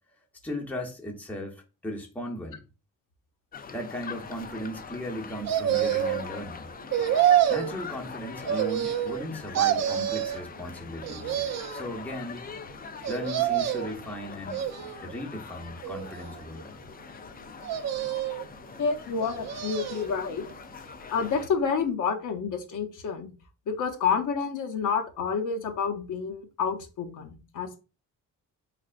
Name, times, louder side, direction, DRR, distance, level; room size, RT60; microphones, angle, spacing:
voice 1, 0.4-2.6 3.7-6.7 7.5-12.4 13.1-16.8, left 1 dB, 5° left, 0.8 m, -37 dB
sound 1, 3.5-21.5, left 5 dB, 25° left, 0.3 m, -43 dB
sound 2, 5.5-6.3 6.9-7.7 8.5-9.2 9.5-10.4 11.0-11.9 13.0-14.0 14.5-15.2 15.8-16.6 17.6-18.4 19.2-20.1 20.5-20.6, right 11 dB, 50° right, 0.4 m, -27 dB
voice 2, 18.8-20.5 21.1-23.3 23.7-27.8, left 6 dB, 60° left, 0.8 m, -29 dB
3.5 x 3.3 x 2.4 m
cardioid pair, 90°, 35 cm